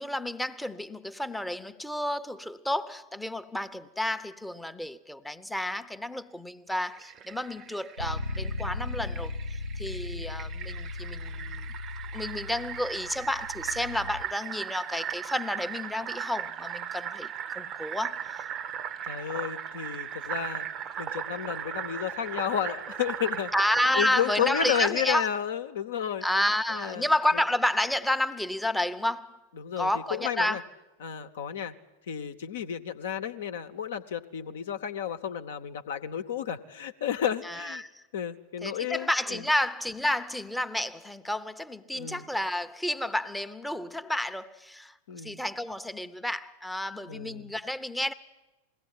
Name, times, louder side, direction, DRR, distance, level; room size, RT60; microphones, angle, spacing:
voice 1, 0.0-9.3 9.8-11.7 12.1-17.3 17.6-18.5 23.5-25.3 26.2-29.4 29.8-30.7 37.4-37.9 38.6-44.9 45.2-48.1, left 1 dB, 5° left, 0.7 m, -30 dB
Fill (with liquid), 6.8-24.9, right 9 dB, 30° right, 0.7 m, -38 dB
Bass guitar, 8.0-14.2, left 2 dB, 90° right, 1.0 m, -37 dB
voice 2, 19.1-20.7 21.0-23.5 24.0-26.2 26.7-27.1 29.6-30.6 31.0-31.7 32.1-37.8 38.1-39.4 41.9-42.2 45.1-45.4 47.1-47.5, left 9 dB, 60° left, 0.9 m, -32 dB
21.5 x 17.0 x 9.7 m
figure-of-eight pair, 90°, 0 cm